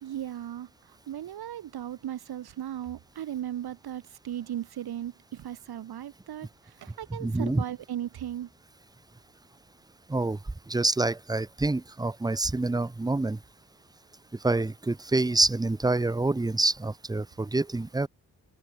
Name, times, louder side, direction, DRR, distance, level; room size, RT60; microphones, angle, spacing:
voice 1, 0.0-8.5, right 11 dB, 75° right, 0.9 m, -37 dB
voice 2, 7.2-7.6 10.1-10.4 10.7-13.4 14.4-18.1, right 2 dB, 10° right, 0.6 m, -26 dB
cardioid pair, 90°, 39 cm